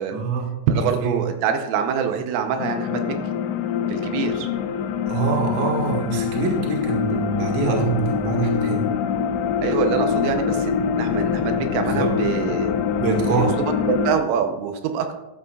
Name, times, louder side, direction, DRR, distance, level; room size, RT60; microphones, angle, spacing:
voice 1, 0.1-0.6 1.0-1.2 5.1-9.0 11.8-12.1 13.0-13.5, right 4 dB, 60° right, 0 dB, 1.8 m, -24 dB
voice 2, 0.7-3.1 3.9-4.5 9.6-12.7 13.4-13.5 14.0-15.2, right 7 dB, 80° right, 6 dB, 3.3 m, -25 dB
sound 1, 2.6-14.2, left 7 dB, 90° left, 2.5 m, -24 dB
12.5 x 11.5 x 2.4 m, 0.97 s
omnidirectional pair, 5.9 m